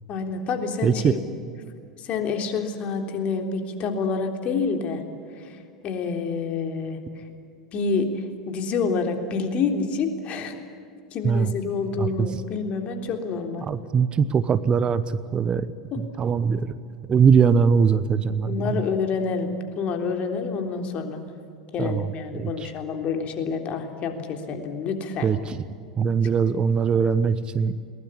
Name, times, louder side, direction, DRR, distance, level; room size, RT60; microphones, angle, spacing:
voice 1, 0.1-1.2 2.0-5.0 5.3-7.2 7.7-10.6 11.1-13.7 15.9-16.0 18.4-21.2 21.7-25.3, left 5 dB, 40° left, 5 dB, 3.6 m, -28 dB
voice 2, 0.8-1.2 11.2-11.5 12.0-12.3 13.6-15.7 16.0-16.7 17.1-18.8 21.8-22.7 25.2-25.6 26.0-27.8, right 6 dB, 30° right, 14 dB, 1.1 m, -21 dB
21.5 x 20.0 x 9.9 m, 2.4 s
hypercardioid pair, 85°, 3 cm